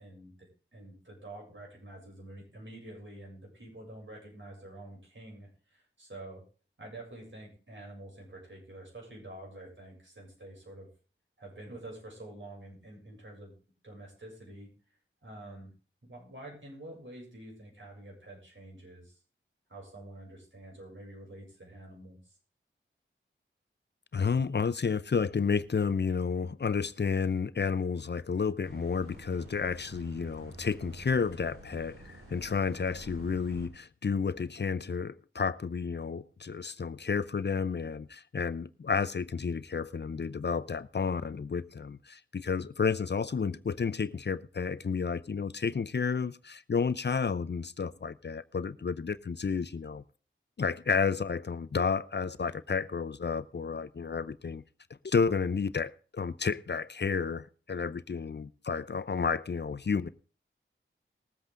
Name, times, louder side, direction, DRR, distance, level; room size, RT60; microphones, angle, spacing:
voice 1, 0.0-6.4 6.8-10.9 11.4-13.6 13.8-14.7 15.2-15.7 16.0-19.2 19.7-22.4, right 1 dB, 65° right, 7.2 m, -48 dB
voice 2, 24.1-50.0 50.6-54.6 55.0-60.1, left 5 dB, 55° left, 0.6 m, -31 dB
sound 1, 28.6-33.7, right 1 dB, 85° right, 4.9 m, -49 dB
20.0 x 8.0 x 3.8 m
wide cardioid pair, 50°, 21 cm